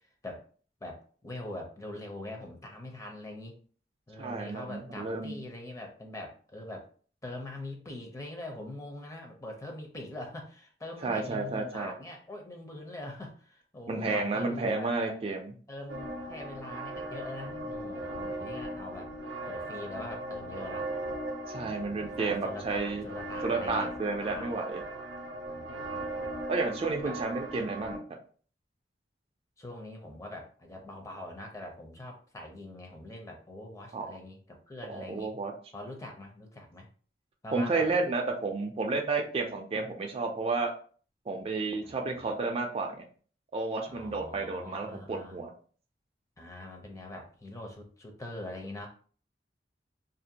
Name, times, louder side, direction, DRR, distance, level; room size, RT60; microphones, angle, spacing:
voice 1, 0.8-3.6 4.1-6.9 7.2-15.2 15.7-19.1 19.5-20.9 21.5-24.5 25.5-26.5 27.0-27.2 27.8-27.9 29.6-35.3 35.7-36.9 37.4-37.9 41.8-42.2 43.9-45.4 46.4-48.9, left 1 dB, 20° left, 2 dB, 0.5 m, -43 dB
voice 2, 4.2-5.4 11.0-11.9 13.9-15.5 21.5-23.0 23.4-24.8 26.5-28.0 33.9-34.1 34.9-35.5 37.5-40.7 41.3-43.0 43.5-45.5, right 3 dB, 35° right, 3 dB, 0.3 m, -31 dB
sound 1, 15.9-28.0, right 1 dB, 85° right, 0.5 m, -38 dB
2.5 x 2.1 x 2.7 m, 0.43 s
head